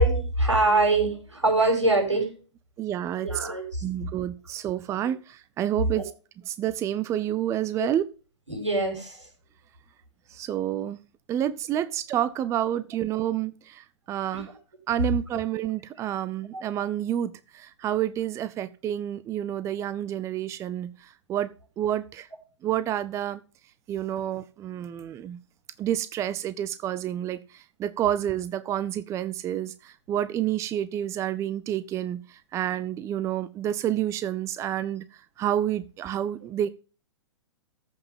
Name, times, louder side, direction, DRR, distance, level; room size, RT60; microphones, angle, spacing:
voice 1, 0.0-2.3 3.2-3.8 5.9-6.0 7.8-7.9 8.5-9.3 14.3-14.4 16.5-16.6, right 2 dB, 85° right, 6.1 m, -23 dB
voice 2, 2.8-3.5 3.8-6.1 6.5-8.0 10.3-11.0 11.3-14.5 14.9-21.5 21.8-22.3 22.6-23.4 23.9-25.4 25.8-35.0 35.4-36.7, right 11 dB, 20° right, 0.6 m, -29 dB
14.5 x 5.8 x 5.4 m
figure-of-eight pair, 110°, 15 cm